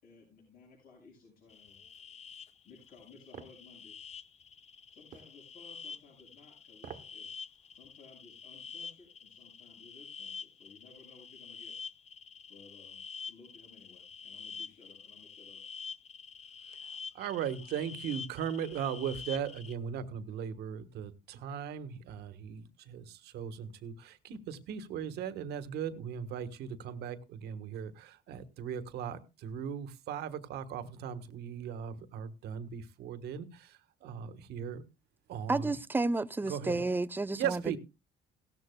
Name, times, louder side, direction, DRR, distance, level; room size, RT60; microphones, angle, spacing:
voice 1, 0.0-1.8 2.6-4.1 4.9-7.3 7.7-11.7 12.5-15.6, left 4 dB, 65° left, 7.1 m, -58 dB
sound 1, 1.5-19.8, left 5 dB, 40° left, 0.8 m, -47 dB
sound 2, 3.3-3.6 5.1-5.3 6.7-7.2 7.6-7.7, right 8 dB, 50° right, 1.3 m, -47 dB
voice 2, 17.1-34.8 35.3-35.8 36.5-36.8 37.3-37.8, right 8 dB, 75° right, 1.4 m, -38 dB
voice 3, 35.5-37.8, right 3 dB, 10° right, 0.6 m, -31 dB
17.0 x 13.5 x 2.3 m
cardioid pair, 110°, 17 cm